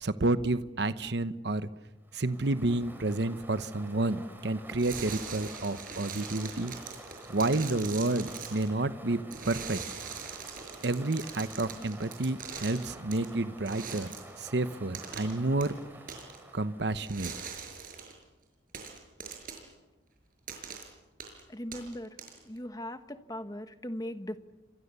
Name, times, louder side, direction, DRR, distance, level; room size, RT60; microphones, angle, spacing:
voice 1, 0.0-1.7 2.1-6.7 7.3-9.8 10.8-14.1 14.4-15.8 16.5-17.3, right 2 dB, 65° right, 12 dB, 1.0 m, -30 dB
sound 1, 2.0-17.5, right 1 dB, 10° right, 4.2 m, -49 dB
sound 2, 4.8-8.7 9.3-13.2 13.6-14.3 14.9-15.3 15.6-15.7 16.1-16.4 17.0-18.1 18.7-19.7 20.5-20.8 21.2-21.4 21.7-22.6, right 6 dB, 50° right, 6.0 m, -42 dB
voice 2, 21.5-22.1 22.5-24.4, left 1 dB, 20° left, 9 dB, 1.3 m, -39 dB
29.0 x 25.0 x 6.9 m, 1.1 s
head